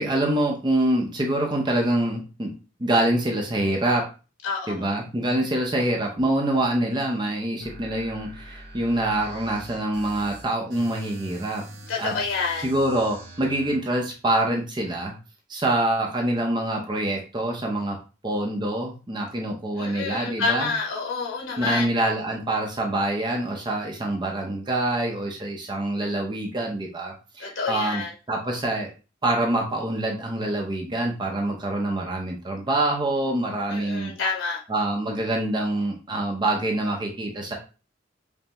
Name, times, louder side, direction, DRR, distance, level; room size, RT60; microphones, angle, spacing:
voice 1, 0.0-2.5 2.8-4.1 4.7-11.6 12.0-12.1 12.6-15.1 15.5-18.0 18.2-20.7 21.6-28.0 28.3-28.9 29.2-34.1 34.7-37.5, right 1 dB, 25° right, 0 dB, 0.6 m, -25 dB
voice 2, 4.4-4.8 11.9-12.7 19.8-21.9 27.4-28.1 33.7-34.6, left 4 dB, 85° left, 0 dB, 1.0 m, -28 dB
sound 1, 7.6-13.8, right 1 dB, 55° right, 0.8 m, -44 dB
5.3 x 2.0 x 2.9 m, 0.33 s
head